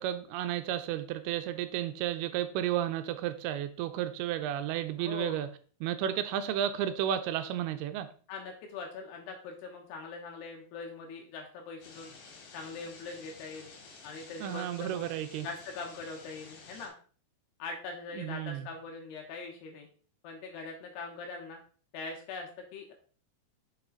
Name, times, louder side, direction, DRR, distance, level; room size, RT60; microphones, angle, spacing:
voice 1, 0.0-5.5 5.8-8.1 14.4-15.5 18.2-18.7, right 11 dB, 80° right, 10 dB, 2.5 m, -32 dB
voice 2, 5.0-5.4 8.3-12.1 12.5-13.7 14.0-15.1 15.4-16.9 17.6-19.9 20.2-21.6 21.9-22.9, left 4 dB, 90° left, 1 dB, 3.2 m, -42 dB
sound 1, 11.8-16.9, left 4 dB, 70° left, 3.8 m, -51 dB
6.9 x 5.7 x 3.9 m, 0.41 s
omnidirectional pair, 4.6 m